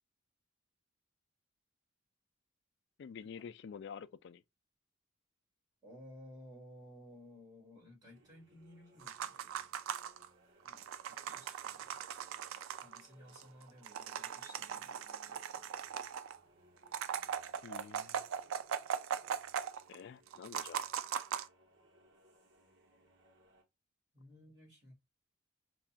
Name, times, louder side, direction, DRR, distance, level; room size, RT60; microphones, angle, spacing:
voice 1, 3.0-4.4 17.6-18.2 19.9-20.8, left 6 dB, 55° left, 0.3 m, -48 dB
voice 2, 5.8-9.7 10.4-11.9 12.4-15.7 17.9-18.1 24.1-24.9, left 1 dB, 20° right, 2.1 m, -57 dB
sound 1, 8.1-23.6, right 1 dB, 55° right, 1.0 m, -66 dB
sound 2, 9.0-10.3 10.6-13.0 13.3-13.4 13.7-16.4 16.8-19.9 20.3-21.5, right 8 dB, 75° right, 0.3 m, -40 dB
5.5 x 2.3 x 2.4 m
head